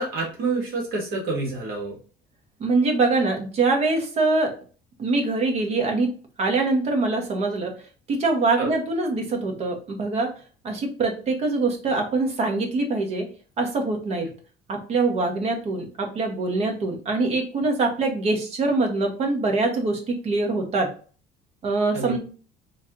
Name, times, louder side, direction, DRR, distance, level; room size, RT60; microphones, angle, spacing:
voice 1, 0.0-2.0 8.6-8.7 21.9-22.2, right 3 dB, 55° right, -2 dB, 1.6 m, -28 dB
voice 2, 2.6-4.5 5.0-6.1 6.4-7.7 8.1-10.3 10.6-13.3 13.6-14.3 14.7-20.9 21.6-22.2, right 3 dB, 35° right, 3 dB, 1.0 m, -24 dB
3.2 x 2.8 x 3.6 m, 0.39 s
cardioid pair, 175°, 18 cm